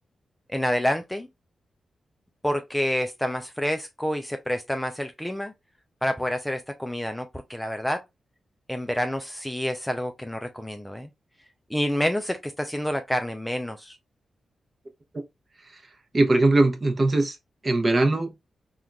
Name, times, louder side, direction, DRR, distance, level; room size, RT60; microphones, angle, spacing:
voice 1, 0.5-1.3 2.4-5.5 6.0-8.0 8.7-11.1 11.7-14.0, equal, 5° left, 0.4 m, -28 dB
voice 2, 16.1-17.4 17.6-18.3, right 2 dB, 35° right, 0.8 m, -21 dB
3.7 x 2.3 x 2.3 m
cardioid pair, 95°, 0 cm